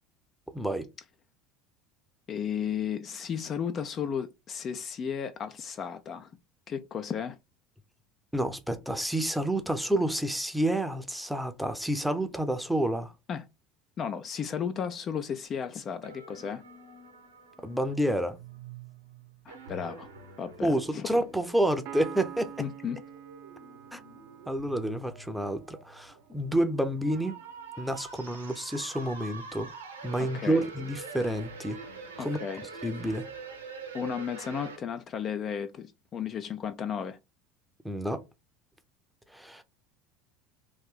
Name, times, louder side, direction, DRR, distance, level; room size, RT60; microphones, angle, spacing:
voice 1, 0.5-0.9 8.3-13.1 17.6-18.4 20.6-22.5 23.9-24.0 24.5-27.3 27.8-29.7 30.0-31.8 32.2-32.4 32.8-33.3 37.8-38.2 39.3-39.6, right 1 dB, ahead, 0.6 m, -29 dB
voice 2, 2.3-6.3 6.7-7.4 13.3-13.5 14.0-16.6 19.5-20.1 20.4-21.1 22.6-23.0 30.2-30.6 32.2-32.7 33.9-37.2, left 7 dB, 40° left, 0.4 m, -34 dB
sound 1, 16.0-34.8, right 4 dB, 80° right, 0.9 m, -46 dB
Piano, 21.9-25.5, right 9 dB, 55° right, 0.4 m, -45 dB
3.1 x 2.6 x 3.6 m
figure-of-eight pair, 70°, 0 cm